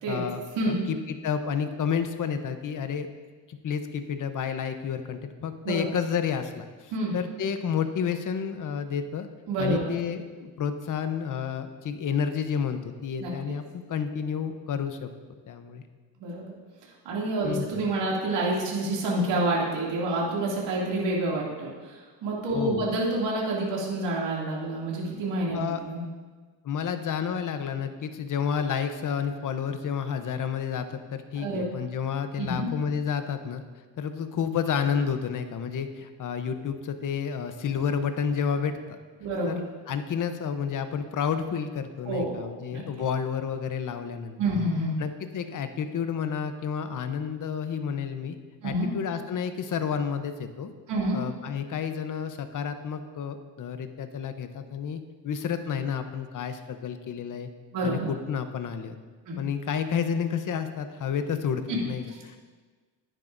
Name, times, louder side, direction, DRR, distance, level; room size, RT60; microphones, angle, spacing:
voice 1, 0.1-3.1 3.5-9.3 9.6-15.1 15.5-15.8 17.4-17.8 22.5-22.9 25.5-25.8 26.6-33.6 34.0-38.8 39.5-39.6 39.9-44.4 45.0-48.4 48.6-50.7 51.1-57.5 57.8-59.0 59.4-62.4, left 7 dB, 45° left, 9 dB, 0.8 m, -30 dB
voice 2, 9.5-9.9 13.2-13.3 16.2-16.5 17.0-25.6 25.9-26.0 31.3-31.6 32.4-32.7 39.2-39.6 42.1-42.8 44.4-45.0 48.6-48.9 50.9-51.2 57.7-58.1 59.3-59.4 61.7-61.8, right 1 dB, 75° right, -4 dB, 2.7 m, -28 dB
11.5 x 9.9 x 2.6 m, 1.4 s
cardioid pair, 100°, 44 cm